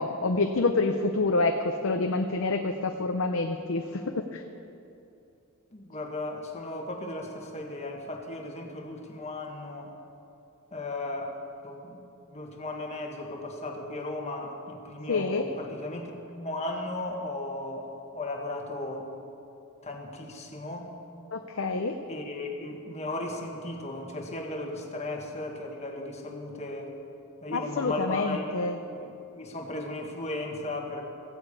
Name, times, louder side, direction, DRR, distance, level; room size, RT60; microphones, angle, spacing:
voice 1, 0.0-4.4 15.1-15.5 21.3-22.0 27.5-28.8, left 3 dB, 60° left, 5 dB, 0.6 m, -27 dB
voice 2, 5.7-9.9 10.7-11.4 11.6-12.1 12.3-19.1 19.8-20.9 22.1-26.9 27.4-28.5 29.0-31.0, left 2 dB, 30° left, 1 dB, 1.6 m, -36 dB
15.5 x 8.1 x 8.3 m, 2.7 s
head